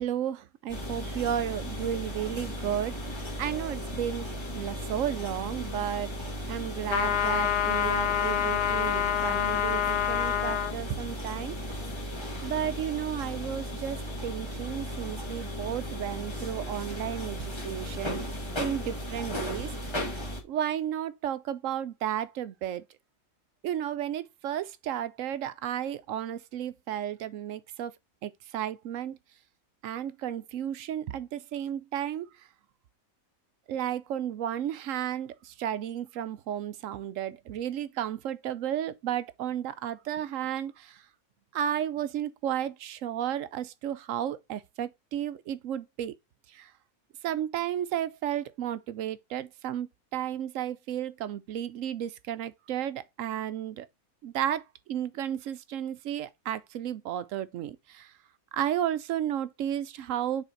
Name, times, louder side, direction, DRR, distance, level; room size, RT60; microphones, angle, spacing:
voice 1, 0.0-3.0 3.4-4.3 4.5-6.1 6.5-11.6 12.4-18.3 18.6-19.7 20.5-22.9 23.6-27.9 28.2-29.2 29.8-32.3 33.7-41.0 41.5-46.1 46.5-46.7 47.2-53.9 54.2-54.6 54.9-58.1 58.5-60.4, right 10 dB, 70° right, 0.9 m, -33 dB
sound 1, 0.7-20.4, equal, 20° left, 1.5 m, -36 dB
sound 2, 6.9-10.7, left 10 dB, 60° left, 0.6 m, -27 dB
6.4 x 4.1 x 4.5 m
omnidirectional pair, 1.5 m